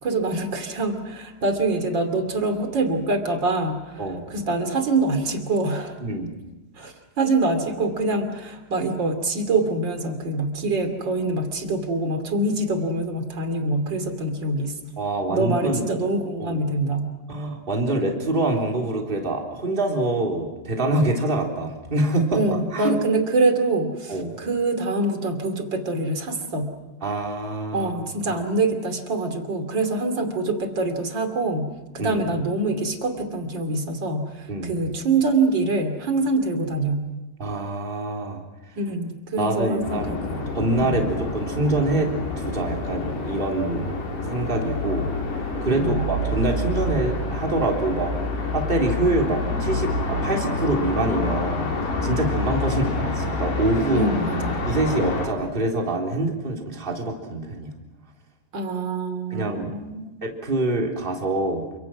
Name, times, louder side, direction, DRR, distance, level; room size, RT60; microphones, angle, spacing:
voice 1, 0.0-6.0 6.8-14.7 15.3-17.1 22.3-26.7 27.7-37.0 38.8-40.5 40.9-41.1 45.7-46.0 53.9-54.6 58.5-60.2, right 2 dB, 30° right, 6 dB, 2.7 m, -25 dB
voice 2, 6.0-6.3 15.0-15.9 16.4-16.6 17.3-22.4 22.7-23.0 24.1-24.3 27.0-28.0 32.0-32.2 34.5-34.8 37.4-38.4 39.4-43.9 44.3-45.1 45.6-48.1 48.5-51.7 52.0-54.1 54.7-57.7 59.3-59.8 60.2-61.7, right 2 dB, 15° right, 0 dB, 3.1 m, -25 dB
sound 1, 39.8-55.3, left 2 dB, 80° left, 6.3 m, -27 dB
29.0 x 26.0 x 6.2 m, 1.1 s
omnidirectional pair, 4.8 m